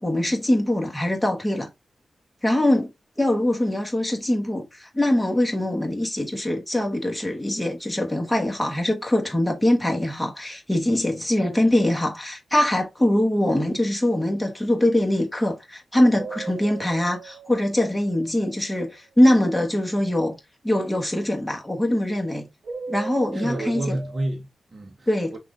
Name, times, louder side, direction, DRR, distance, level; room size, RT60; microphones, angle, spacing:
voice 1, 0.0-1.7 2.4-2.9 3.2-20.4 20.6-22.5 22.9-24.0 25.1-25.3, left 1 dB, 5° left, 1.2 m, -23 dB
sound 1, 16.1-18.6 22.6-24.3, right 5 dB, 60° right, 0.8 m, -38 dB
voice 2, 23.3-25.4, right 1 dB, 35° right, 0.9 m, -30 dB
5.9 x 2.4 x 3.7 m
wide cardioid pair, 140°, 0 cm